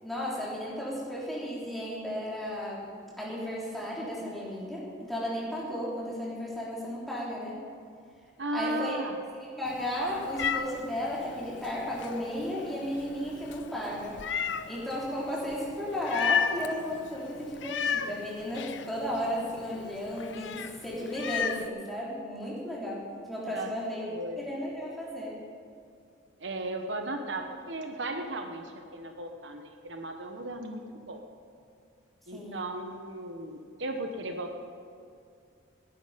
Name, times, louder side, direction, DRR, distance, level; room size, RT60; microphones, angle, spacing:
voice 1, 0.0-7.6 8.5-9.3 9.6-14.2 14.7-24.1 24.4-25.4 32.3-32.7, equal, ahead, -7 dB, 3.9 m, -34 dB
voice 2, 8.4-9.2 23.5-23.7 24.1-24.5 26.4-31.2 32.3-34.6, right 1 dB, 70° right, 4 dB, 1.2 m, -36 dB
Meow, 9.6-21.7, left 7 dB, 70° left, 0.7 m, -35 dB
18.5 x 11.0 x 5.2 m, 2.4 s
head